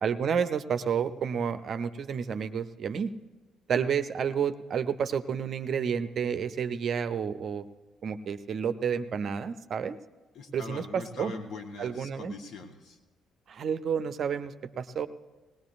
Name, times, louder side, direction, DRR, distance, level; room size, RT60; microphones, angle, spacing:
voice 1, 0.0-3.1 3.7-7.7 8.0-10.0 10.5-11.3 11.8-12.3 13.5-15.1, right 7 dB, 50° right, 11 dB, 0.5 m, -30 dB
voice 2, 10.3-13.0, left 3 dB, 55° left, 5 dB, 1.2 m, -42 dB
19.0 x 19.0 x 2.5 m, 1.2 s
figure-of-eight pair, 45°, 0 cm